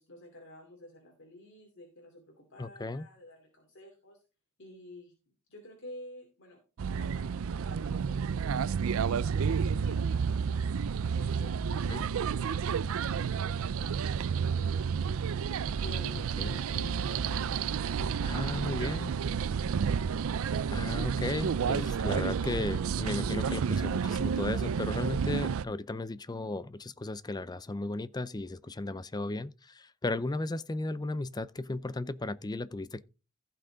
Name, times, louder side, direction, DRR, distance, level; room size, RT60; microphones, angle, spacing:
voice 1, 0.0-4.2 4.6-5.1 5.5-6.6 6.9-8.4 9.0-10.6 11.1-12.0 12.3-15.1 15.8-19.1, left 1 dB, 60° left, 2.7 m, -51 dB
voice 2, 2.6-3.1 11.9-12.0 16.4-16.6 18.2-19.1 20.7-33.0, left 2 dB, 20° left, 0.5 m, -35 dB
sound 1, 6.8-25.7, right 6 dB, 70° right, 0.4 m, -30 dB
15.5 x 5.9 x 3.9 m
head